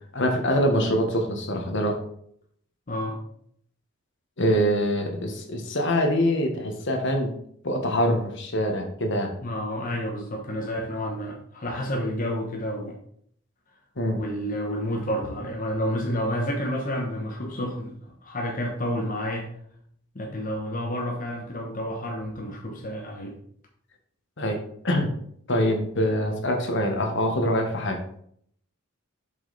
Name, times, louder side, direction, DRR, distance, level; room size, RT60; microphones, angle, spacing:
voice 1, 0.1-2.0 4.4-7.3 7.6-9.3 14.0-14.2 24.4-24.6 24.8-25.1 25.5-28.0, equal, 65° left, 3 dB, 1.4 m, -24 dB
voice 2, 2.9-3.2 9.4-13.0 14.2-17.9 18.2-19.5 20.1-23.4, equal, 40° left, 0 dB, 1.1 m, -30 dB
7.2 x 5.3 x 4.2 m, 0.66 s
head